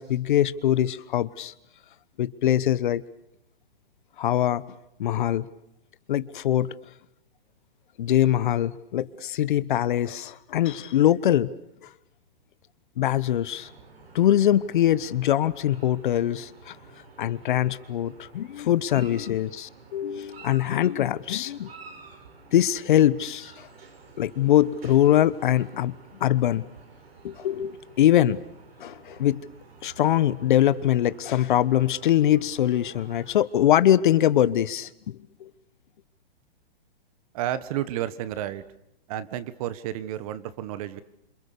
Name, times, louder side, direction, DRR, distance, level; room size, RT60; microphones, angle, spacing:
voice 1, 0.0-1.5 2.2-3.0 4.2-4.6 5.0-5.5 6.1-6.7 8.0-11.5 11.8-11.9 13.0-13.7 14.1-16.8 17.2-21.7 22.5-23.7 24.2-25.9 26.2-26.7 27.2-28.4 28.8-29.5 29.8-35.5, left 12 dB, 55° left, 17 dB, 1.2 m, -23 dB
sound 1, 13.5-33.4, right 4 dB, 85° right, 6.4 m, -50 dB
voice 2, 37.3-38.6 39.1-41.0, right 12 dB, 40° right, 15 dB, 1.5 m, -31 dB
27.5 x 26.0 x 6.8 m, 0.80 s
hypercardioid pair, 150°, 29 cm